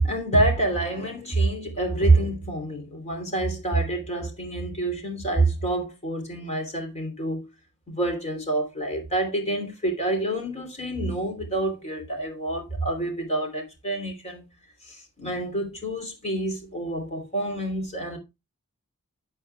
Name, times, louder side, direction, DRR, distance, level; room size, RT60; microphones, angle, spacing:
voice 1, 0.0-7.5 7.9-14.4 14.8-18.2, right 2 dB, 30° left, 3.1 m, -27 dB
12.5 x 8.0 x 2.3 m
head